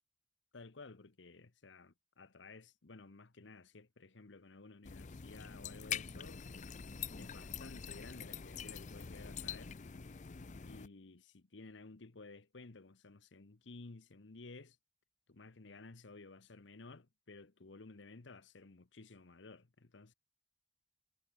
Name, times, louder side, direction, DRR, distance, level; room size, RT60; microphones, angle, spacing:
voice 1, 0.5-6.7 7.2-9.7 10.6-14.8 15.3-20.1, left 3 dB, 70° left, 1.0 m, -55 dB
sound 1, 4.8-10.9, left 7 dB, 40° left, 0.6 m, -45 dB
head